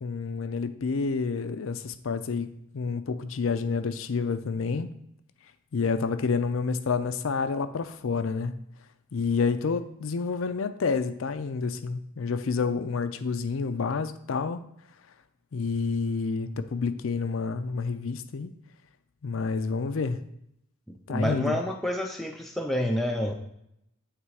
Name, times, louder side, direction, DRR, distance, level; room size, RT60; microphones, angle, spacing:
voice 1, 0.0-2.5 2.7-4.9 5.7-8.5 9.1-14.6 15.5-18.5 19.2-20.2 21.1-21.6, left 4 dB, 70° left, 11 dB, 0.5 m, -29 dB
voice 2, 20.9-23.3, equal, ahead, 1 dB, 0.4 m, -28 dB
8.2 x 3.3 x 4.7 m, 0.77 s
head